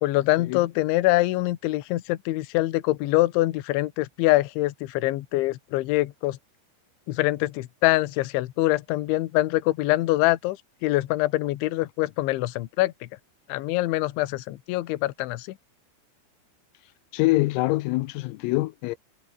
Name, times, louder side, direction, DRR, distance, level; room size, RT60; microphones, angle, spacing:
voice 1, 0.0-6.4 7.1-10.6 10.8-12.9 13.5-15.5, left 18 dB, 75° left, 3.4 m, -24 dB
voice 2, 17.1-19.0, left 21 dB, 90° left, 3.5 m, -24 dB
omnidirectional pair, 6.0 m